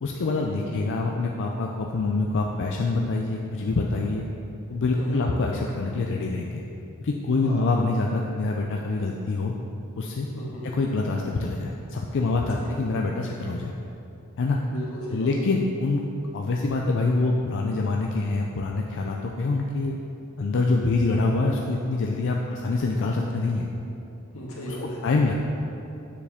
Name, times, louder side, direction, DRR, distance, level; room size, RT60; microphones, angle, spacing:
voice 1, 0.0-4.2 4.7-6.6 7.0-9.5 10.0-10.3 10.7-13.7 14.4-14.6 15.1-16.0 16.3-20.0 20.4-23.7 25.0-25.3, left 3 dB, 60° left, 0 dB, 0.4 m, -25 dB
voice 2, 5.0-5.3 7.4-7.6 10.3-10.7 12.6-12.8 14.7-15.3 23.5-23.6 24.3-25.0, equal, 85° left, -5 dB, 1.7 m, -35 dB
7.1 x 6.9 x 3.5 m, 2.8 s
head